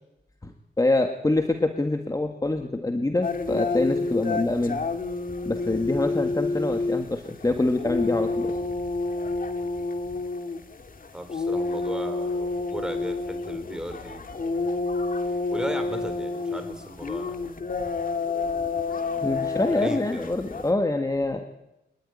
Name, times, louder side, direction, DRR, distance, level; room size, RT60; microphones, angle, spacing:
voice 1, 0.4-4.8 5.4-8.5 19.2-21.4, left 2 dB, 20° left, 6 dB, 1.6 m, -25 dB
sound 1, 3.2-20.7, left 3 dB, 50° left, 2.2 m, -29 dB
voice 2, 11.1-14.3 15.5-17.5 19.7-20.3, equal, 5° right, 6 dB, 4.3 m, -36 dB
24.5 x 19.5 x 9.9 m, 0.94 s
wide cardioid pair, 135°, 19 cm